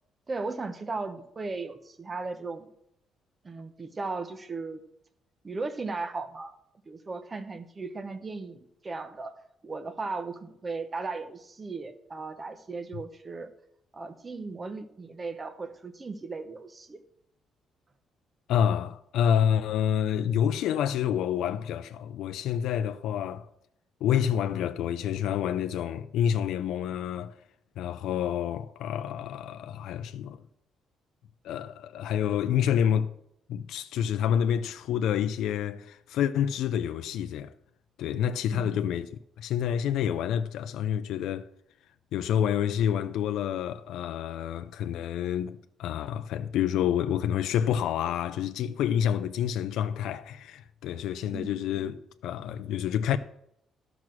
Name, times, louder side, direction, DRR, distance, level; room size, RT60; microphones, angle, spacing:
voice 1, 0.3-2.7 3.4-4.8 5.4-6.5 6.9-9.3 9.6-13.5 13.9-17.0 38.5-38.9 51.3-51.5, right 3 dB, 25° right, 0.9 m, -36 dB
voice 2, 18.5-23.5 24.0-27.3 27.8-30.4 31.4-33.1 33.5-37.5 38.0-41.5 42.1-53.2, left 9 dB, 80° left, 0.5 m, -28 dB
12.5 x 6.1 x 6.1 m
cardioid pair, 140°, 0 cm